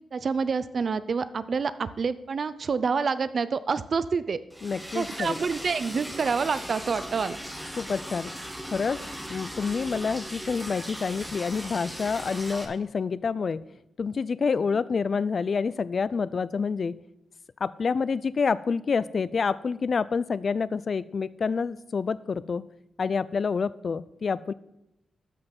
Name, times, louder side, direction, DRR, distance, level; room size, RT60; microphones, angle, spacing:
voice 1, 0.1-4.4 4.9-7.4, right 5 dB, 45° right, 15 dB, 0.5 m, -27 dB
Liquid, 4.5-12.6, equal, ahead, 1.4 m, -38 dB
voice 2, 4.6-5.4 7.8-8.3 8.7-9.0 9.3-13.6 14.0-16.9 17.6-22.6 23.0-24.5, left 5 dB, 45° left, 18 dB, 0.4 m, -28 dB
13.0 x 5.5 x 5.9 m, 0.86 s
wide cardioid pair, 140°, 0 cm